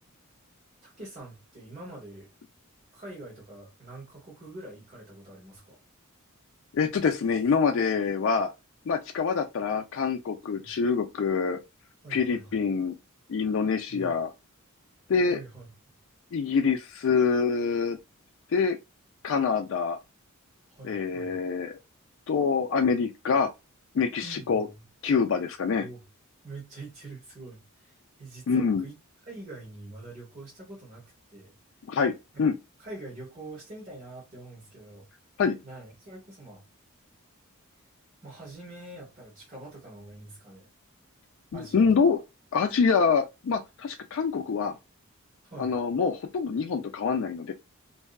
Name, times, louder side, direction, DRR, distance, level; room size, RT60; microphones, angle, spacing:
voice 1, 0.8-2.3 2.9-5.8 10.6-10.7 12.0-12.6 13.9-14.1 15.3-15.7 20.7-21.3 24.2-24.8 25.8-26.0 26.4-29.0 29.2-31.5 32.3-32.4 32.8-35.1 35.6-36.6 38.2-40.7 41.5-42.2 45.4-45.7, right 2 dB, 35° right, 1.2 m, -45 dB
voice 2, 6.7-8.5 8.9-11.6 12.1-12.9 13.3-14.3 15.1-15.4 16.3-18.0 18.5-18.8 19.2-20.0 20.8-21.7 22.3-23.5 23.9-24.7 25.0-25.8 28.5-28.9 31.9-32.1 32.4-32.5 35.4-35.6 41.5-42.2 42.5-44.7 45.6-47.5, left 5 dB, 60° left, 0.4 m, -25 dB
2.6 x 2.3 x 2.2 m
head